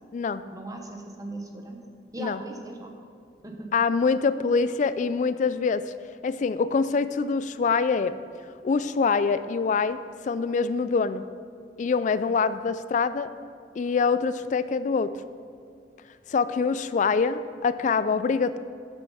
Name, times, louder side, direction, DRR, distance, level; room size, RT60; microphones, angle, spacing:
voice 1, 0.5-1.8 2.1-2.9 3.4-3.7, right 2 dB, 20° right, 2 dB, 1.0 m, -38 dB
voice 2, 3.7-5.8 6.2-8.2 8.6-10.0 10.2-11.2 11.8-13.3 13.8-15.1 16.3-18.6, left 5 dB, 45° left, 14 dB, 0.3 m, -24 dB
7.7 x 7.5 x 5.6 m, 2.4 s
head